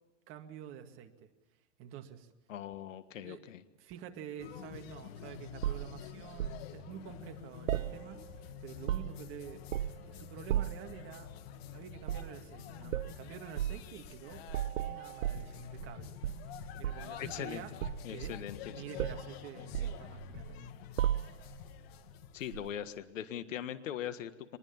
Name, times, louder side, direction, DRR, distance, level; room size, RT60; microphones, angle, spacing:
voice 1, 0.3-1.3 1.8-2.3 3.1-3.5 3.8-8.2 8.6-9.6 10.0-11.3 11.7-14.4 14.8-16.2 16.8-17.7 18.1-18.4 18.7-20.7, right 10 dB, 30° right, 5 dB, 2.1 m, -48 dB
voice 2, 2.5-3.6 17.2-17.6 18.0-18.6 18.9-19.0 22.3-24.6, left 10 dB, 75° left, 12 dB, 1.7 m, -40 dB
sound 1, 4.4-22.9, left 10 dB, 50° left, 1.6 m, -48 dB
sound 2, 5.6-6.6 7.7-8.4 8.7-9.3 9.7-10.1 10.5-10.9 12.0-12.3 12.9-13.1 13.6-13.8 14.5-15.9 16.2-17.2 17.8-18.7 19.0-19.3 19.7-20.6 21.0-21.6 22.5-22.7, right 12 dB, 90° right, 0.9 m, -35 dB
24.0 x 21.0 x 7.2 m, 1.1 s
hypercardioid pair, 150°, 39 cm